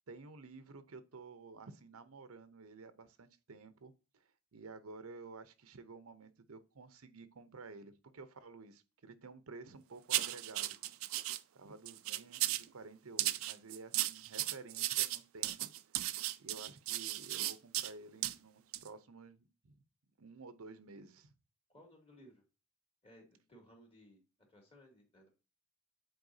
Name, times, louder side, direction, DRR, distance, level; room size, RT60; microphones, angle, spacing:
voice 1, 0.1-10.8 11.5-15.7 16.4-19.8 20.2-21.3, right 3 dB, 90° right, 0.7 m, -52 dB
sound 1, 10.1-11.4 11.9-12.7 13.2-17.9 18.2-18.4 18.7-18.9, right 16 dB, 70° right, 0.4 m, -35 dB
voice 2, 21.7-22.4 23.0-24.2 24.5-25.3, equal, 25° left, 2.3 m, -60 dB
7.8 x 4.4 x 2.7 m
head